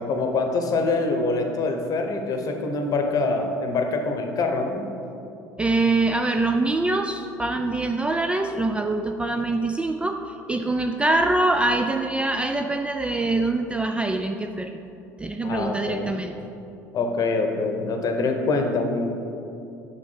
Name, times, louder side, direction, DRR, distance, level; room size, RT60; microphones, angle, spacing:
voice 1, 0.0-4.9 15.4-16.1 16.9-19.1, left 3 dB, 40° left, 4 dB, 0.9 m, -25 dB
voice 2, 5.6-14.8 15.2-16.4, right 2 dB, 10° right, 5 dB, 0.3 m, -24 dB
6.3 x 6.0 x 4.4 m, 2.7 s
figure-of-eight pair, 65°, 10 cm